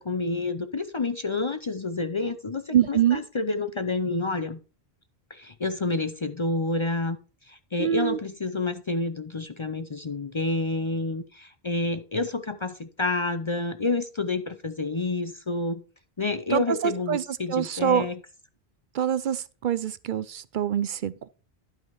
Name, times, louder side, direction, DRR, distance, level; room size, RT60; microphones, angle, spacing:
voice 1, 0.0-4.6 5.3-7.2 7.5-15.8 16.2-18.2, left 3 dB, 35° left, 0.5 m, -29 dB
voice 2, 2.7-3.2 7.8-8.2 16.5-17.2 17.5-18.1 18.9-21.3, right 10 dB, 60° right, 0.6 m, -25 dB
12.0 x 5.1 x 4.6 m
omnidirectional pair, 1.0 m